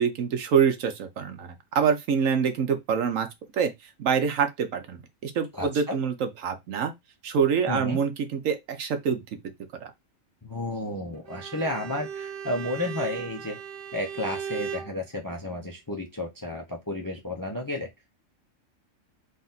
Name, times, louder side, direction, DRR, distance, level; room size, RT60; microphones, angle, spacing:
voice 1, 0.0-3.3 3.5-3.7 4.0-6.9 7.2-9.2 9.8-9.9, right 7 dB, 75° right, 1.2 m, -25 dB
voice 2, 5.5-6.0 7.7-8.0 10.4-13.6 13.9-17.9, left 1 dB, 25° left, 0.5 m, -32 dB
Bowed string instrument, 11.3-15.0, right 8 dB, 55° right, 0.6 m, -37 dB
4.0 x 2.5 x 3.9 m
omnidirectional pair, 1.4 m